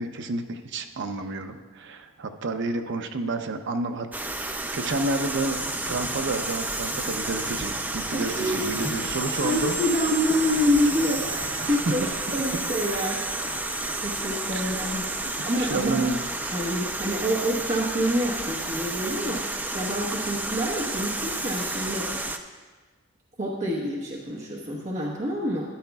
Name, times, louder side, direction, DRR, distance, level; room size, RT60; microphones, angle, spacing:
voice 1, 0.0-4.1 4.4-9.7 11.6-11.9 12.9-13.3 14.5-14.9 15.2-16.3, right 3 dB, 60° right, 7 dB, 0.6 m, -30 dB
sound 1, 4.1-22.4, right 2 dB, 10° right, 0.4 m, -31 dB
sound 2, 5.2-12.2, right 1 dB, 85° right, 1.8 m, -43 dB
voice 2, 8.1-8.7 9.4-12.0 12.3-13.2 13.6-13.7 14.0-16.1 16.5-22.1 23.4-25.6, equal, 35° right, -4 dB, 1.1 m, -27 dB
13.0 x 11.0 x 2.3 m, 1.3 s
head